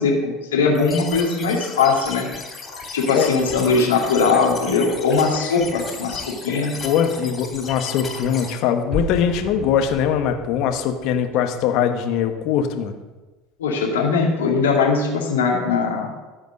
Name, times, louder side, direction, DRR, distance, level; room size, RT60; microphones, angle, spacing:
voice 1, 0.0-2.3 2.9-6.7 13.6-16.1, left 4 dB, 85° left, -1 dB, 2.2 m, -20 dB
sound 1, 0.7-8.5, left 4 dB, 30° left, 2.9 m, -35 dB
voice 2, 6.8-12.9, left 8 dB, 60° left, 6 dB, 1.3 m, -21 dB
sound 2, 8.9-11.9, left 1 dB, 5° left, 3.8 m, -33 dB
14.0 x 5.0 x 6.5 m, 1.2 s
hypercardioid pair, 70°, 0 cm